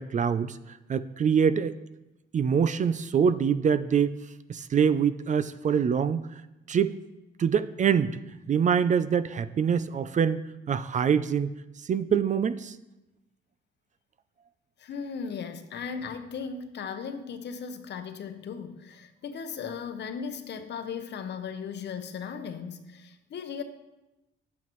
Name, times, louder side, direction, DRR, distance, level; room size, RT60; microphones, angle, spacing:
voice 1, 0.0-1.8 2.3-4.1 4.5-6.2 6.7-6.9 7.4-8.2 8.5-11.5 11.8-12.8, right 7 dB, 40° right, 14 dB, 0.4 m, -25 dB
voice 2, 14.8-23.6, left 6 dB, 60° left, 9 dB, 0.9 m, -37 dB
10.0 x 8.3 x 3.1 m, 0.99 s
cardioid pair, 90°, 20 cm